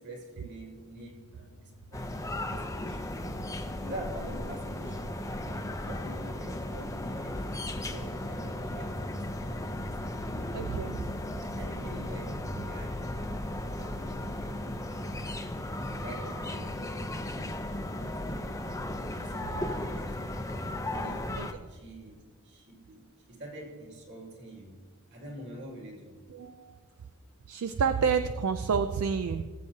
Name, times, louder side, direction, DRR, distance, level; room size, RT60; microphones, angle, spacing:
voice 1, 0.0-2.1 2.5-3.2 3.8-10.2 10.5-10.7 11.6-14.7 15.2-18.6 19.1-20.4 20.9-21.4 21.7-24.7 25.1-26.2, right 1 dB, 50° right, -2 dB, 2.5 m, -46 dB
sound 1, 0.8-16.9, equal, 75° left, 0.8 m, -54 dB
sound 2, 1.9-21.5, left 1 dB, 15° left, 0.6 m, -36 dB
sound 3, 7.3-15.3, equal, 40° left, 0.9 m, -51 dB
voice 2, 10.5-11.0 15.0-15.1 18.9-19.0 21.4-21.5 26.3-26.8 27.5-29.5, right 6 dB, 75° right, 9 dB, 0.4 m, -29 dB
20.0 x 8.0 x 2.8 m, 1.5 s
head